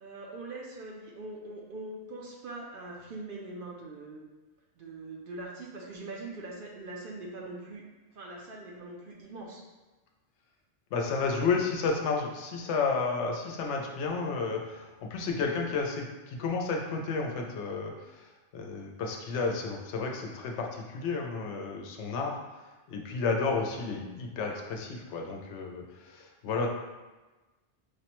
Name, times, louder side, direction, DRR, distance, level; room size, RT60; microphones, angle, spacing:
voice 1, 0.0-4.2 4.8-7.8 8.1-9.6, right 2 dB, 60° right, -1 dB, 0.6 m, -42 dB
voice 2, 10.9-22.4 22.9-26.7, left 4 dB, 80° left, 1 dB, 0.9 m, -32 dB
4.9 x 2.1 x 2.9 m, 1.2 s
omnidirectional pair, 1.2 m